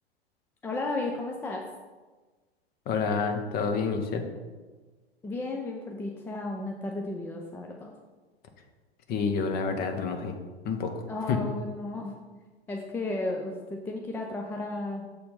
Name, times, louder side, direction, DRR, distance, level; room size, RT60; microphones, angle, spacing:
voice 1, 0.6-1.6 5.2-7.9 11.1-12.1 12.7-15.1, left 2 dB, 5° left, 1 dB, 0.4 m, -34 dB
voice 2, 2.9-4.2 9.1-10.3 10.6-10.9 11.3-11.4, left 5 dB, 30° left, 6 dB, 0.9 m, -28 dB
6.8 x 4.3 x 5.3 m, 1.3 s
figure-of-eight pair, 100°, 33 cm